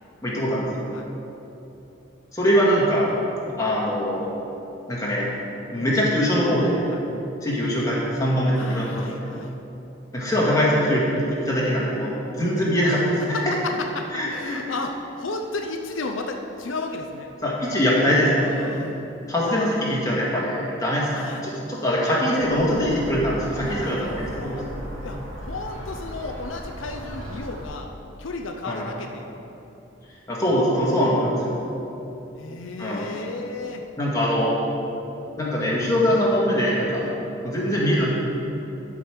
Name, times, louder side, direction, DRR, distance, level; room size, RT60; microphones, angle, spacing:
voice 1, 0.2-0.7 2.3-3.2 3.6-4.3 4.9-5.3 5.7-6.8 7.4-9.3 10.1-13.4 14.1-14.6 17.4-18.5 19.3-24.6 28.6-28.9 30.3-31.7 32.8-33.1 34.0-34.5 35.4-37.1 37.4-38.1, equal, 15° left, -6 dB, 2.0 m, -22 dB
voice 2, 8.6-9.5 13.3-17.3 18.4-19.0 21.1-21.5 23.6-24.7 25.0-27.9 28.2-29.3 32.4-33.8 37.0-37.1, left 3 dB, 80° left, 3 dB, 0.7 m, -34 dB
sound 1, 22.4-27.6, equal, 90° right, 2.4 m, -36 dB
12.5 x 5.3 x 6.4 m, 3.0 s
head